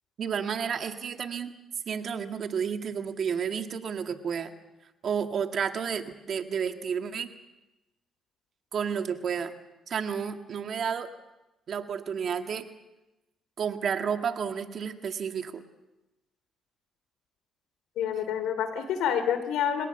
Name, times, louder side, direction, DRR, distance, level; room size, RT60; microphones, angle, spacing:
voice 1, 0.2-1.5 1.9-4.5 5.0-7.3 8.7-9.5 9.9-11.1 11.7-12.6 13.6-15.6, right 7 dB, 60° right, 7 dB, 1.9 m, -31 dB
voice 2, 18.0-19.9, left 8 dB, 90° left, 10 dB, 3.0 m, -28 dB
30.0 x 18.0 x 7.0 m, 0.97 s
cardioid pair, 90°, 0 cm